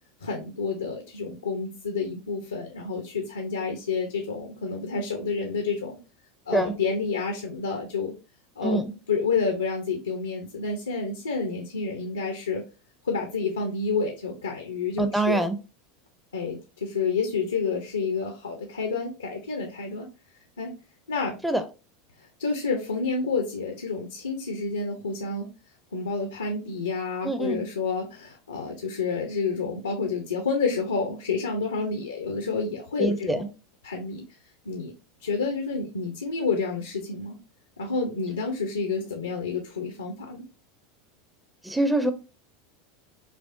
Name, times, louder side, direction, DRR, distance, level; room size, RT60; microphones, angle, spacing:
voice 1, 0.2-6.0 6.5-8.1 8.6-12.6 13.0-15.5 16.3-20.1 20.6-20.7 21.1-21.3 22.4-25.5 25.9-33.5 33.8-34.2 34.7-34.9 35.2-37.4 37.8-40.5, left 4 dB, 80° left, 0.6 m, -29 dB
voice 2, 15.0-15.6 21.4-21.6 27.2-27.6 33.0-33.4 41.6-42.1, right 2 dB, 5° right, 0.6 m, -24 dB
5.7 x 2.0 x 2.5 m
figure-of-eight pair, 80°, 0 cm